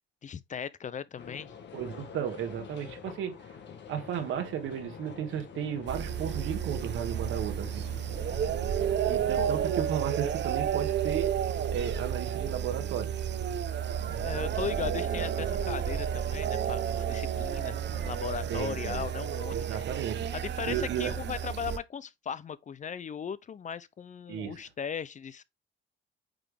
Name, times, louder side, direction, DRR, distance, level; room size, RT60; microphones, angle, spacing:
voice 1, 0.2-1.5 9.4-9.5 14.0-19.9 20.3-25.4, left 7 dB, 40° left, 0.5 m, -38 dB
sound 1, 1.2-9.9, left 6 dB, 65° left, 1.6 m, -46 dB
voice 2, 1.7-3.4 3.9-7.8 9.1-11.3 11.7-13.1 14.1-14.3 18.5-19.1 19.5-20.3 20.7-21.1 24.3-24.7, right 9 dB, 80° right, 1.6 m, -34 dB
sound 2, 5.9-21.8, right 9 dB, 60° right, 0.8 m, -31 dB
8.8 x 3.5 x 3.4 m
cardioid pair, 90°, 20 cm